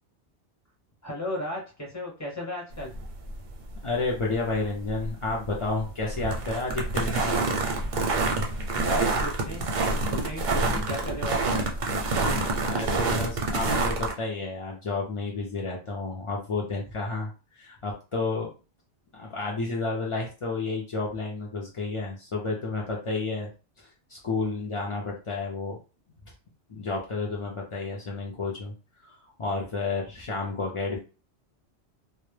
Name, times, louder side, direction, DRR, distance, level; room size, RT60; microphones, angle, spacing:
voice 1, 1.0-2.9 8.7-9.7 10.1-11.6, left 1 dB, 15° left, -2 dB, 0.7 m, -35 dB
sound 1, 2.7-14.1, right 3 dB, 55° right, 0.6 m, -27 dB
voice 2, 3.8-7.5 12.6-17.3 17.6-18.5 19.1-23.5 23.8-25.8 26.7-28.7 29.0-31.0, left 3 dB, 60° left, -2 dB, 0.3 m, -31 dB
2.1 x 2.0 x 3.1 m, 0.33 s
omnidirectional pair, 1.2 m